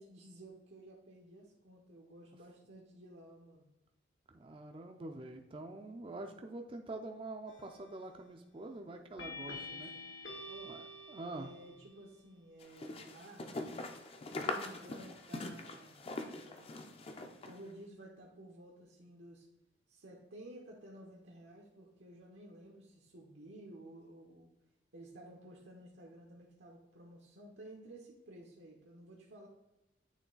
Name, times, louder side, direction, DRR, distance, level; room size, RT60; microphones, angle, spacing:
voice 1, 0.0-3.7 9.6-10.1 10.4-10.8 11.3-13.5 14.3-16.9 17.5-19.5 19.9-24.5 24.9-29.5, right 1 dB, 80° right, -2 dB, 0.8 m, -54 dB
voice 2, 4.3-9.9 10.7-11.5, right 2 dB, 30° right, 4 dB, 0.4 m, -45 dB
sound 1, 7.5-8.0 9.2-11.9, left 2 dB, 75° left, 1.1 m, -47 dB
sound 2, 12.6-17.6, left 2 dB, 30° left, 0.4 m, -42 dB
8.3 x 3.2 x 3.8 m, 0.97 s
head